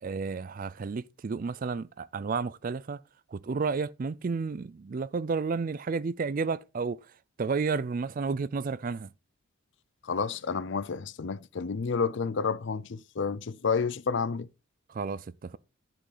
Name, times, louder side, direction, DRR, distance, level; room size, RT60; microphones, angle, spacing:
voice 1, 0.0-3.0 3.3-7.1 7.4-9.1 14.9-15.6, right 4 dB, 40° right, 0.4 m, -31 dB
voice 2, 10.0-14.5, left 5 dB, 55° left, 0.5 m, -30 dB
11.0 x 6.1 x 4.0 m
head